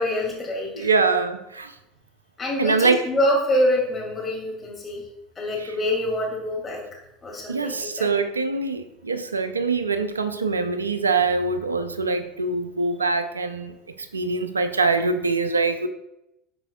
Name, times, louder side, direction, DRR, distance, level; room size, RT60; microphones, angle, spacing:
voice 1, 0.0-0.9 2.4-5.0 5.4-6.8 7.2-8.1, left 1 dB, 20° left, -2 dB, 2.4 m, -25 dB
voice 2, 0.8-1.7 2.6-3.1 5.6-5.7 7.5-13.7 14.1-15.9, right 4 dB, 85° right, 10 dB, 0.4 m, -23 dB
10.5 x 4.3 x 2.3 m, 0.88 s
figure-of-eight pair, 70°, 0 cm